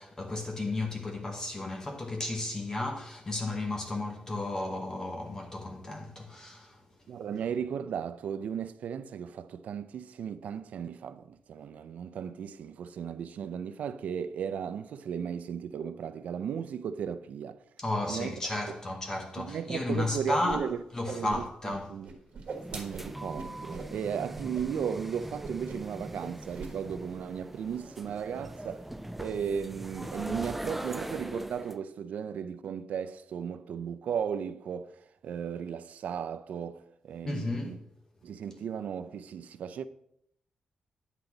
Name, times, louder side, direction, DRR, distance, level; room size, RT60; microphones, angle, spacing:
voice 1, 0.0-6.8 17.8-22.0 37.2-37.8, left 2 dB, 25° left, 1.0 m, -33 dB
voice 2, 7.1-17.6 18.1-18.3 18.7-18.8 19.4-20.8 21.1-22.1 22.7-28.9 29.2-37.8 38.2-39.9, right 7 dB, 70° right, 0.5 m, -36 dB
Whoosh swoosh swish, 20.5-20.6 20.9-21.8 22.0-23.9 24.3-24.6 24.9-25.1 25.4-25.9 26.2-26.7, right 4 dB, 50° right, 1.6 m, -41 dB
sound 1, 22.5-31.8, right 1 dB, 5° right, 0.3 m, -41 dB
9.7 x 3.9 x 7.2 m
wide cardioid pair, 165°, 3 cm